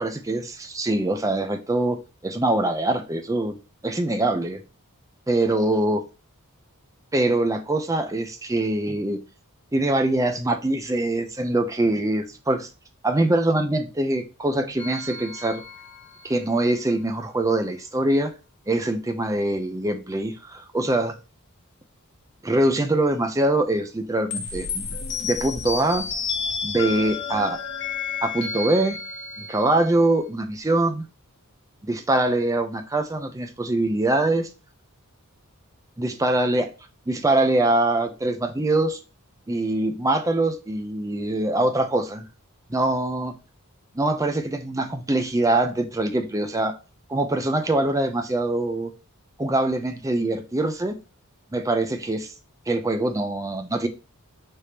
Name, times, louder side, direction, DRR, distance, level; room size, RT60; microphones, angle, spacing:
voice 1, 0.0-3.5 3.8-4.6 5.3-6.0 7.1-9.2 9.7-12.7 13.0-15.6 16.2-18.3 18.7-21.2 22.4-24.9 25.2-26.1 26.6-27.6 28.2-29.0 29.4-31.1 31.8-34.5 36.0-36.7 37.1-39.0 39.5-42.3 42.7-43.4 43.9-46.8 47.1-48.9 49.4-51.0 51.5-52.3 52.7-53.9, right 2 dB, 15° right, 0.6 m, -23 dB
sound 1, 14.8-16.3 24.3-30.0, left 5 dB, 55° left, 1.0 m, -31 dB
4.9 x 3.4 x 2.8 m
head